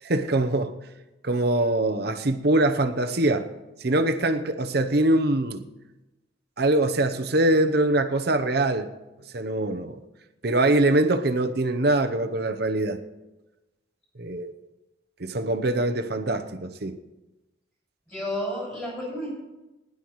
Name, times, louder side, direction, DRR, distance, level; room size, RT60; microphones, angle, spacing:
voice 1, 0.0-0.8 1.2-3.5 3.8-5.6 6.6-8.9 9.3-10.0 10.4-13.0 14.2-14.5 15.2-17.0, right 2 dB, 55° right, 0.8 m, -23 dB
voice 2, 18.1-19.3, left 1 dB, 15° left, 5.8 m, -31 dB
20.0 x 11.0 x 3.1 m
head